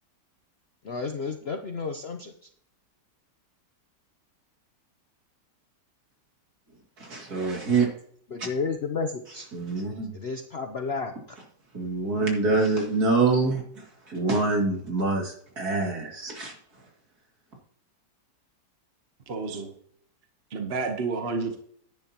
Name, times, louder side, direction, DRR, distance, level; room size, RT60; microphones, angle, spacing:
voice 1, 0.8-2.3 8.3-9.5 10.1-11.1, left 4 dB, 55° left, 5 dB, 0.7 m, -31 dB
voice 2, 7.0-7.9 9.5-10.1 11.7-13.6 14.1-16.5, right 3 dB, 60° right, 0 dB, 2.8 m, -25 dB
voice 3, 19.3-19.7 20.5-21.6, right 4 dB, 45° right, 5 dB, 1.0 m, -30 dB
10.5 x 10.0 x 2.9 m, 0.62 s
omnidirectional pair, 1.8 m